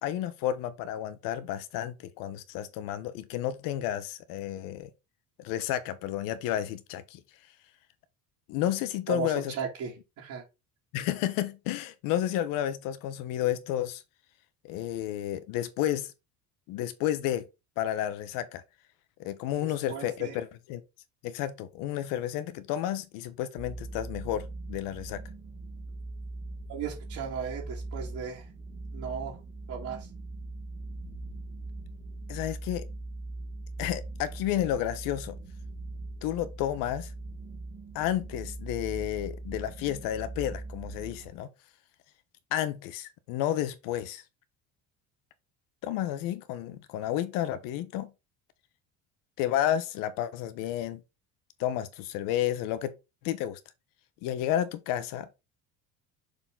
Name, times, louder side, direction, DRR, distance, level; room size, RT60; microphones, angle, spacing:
voice 1, 0.0-4.9 5.4-7.2 8.5-9.5 10.9-14.0 14.6-16.1 16.7-17.4 17.8-18.6 19.2-20.8 21.2-25.2 32.3-32.8 33.8-35.4 36.2-37.1 37.9-41.5 42.5-44.2 45.8-48.1 49.4-51.0 51.6-52.9 53.2-53.6 54.2-55.3, left 12 dB, 80° left, 1.1 m, -31 dB
voice 2, 9.1-10.4 19.6-20.4 26.7-28.4 28.9-29.4 29.7-30.1, right 7 dB, 60° right, 2.4 m, -36 dB
sound 1, 23.6-41.3, right 2 dB, 35° right, 1.6 m, -41 dB
6.9 x 4.2 x 3.8 m
cardioid pair, 115°, 33 cm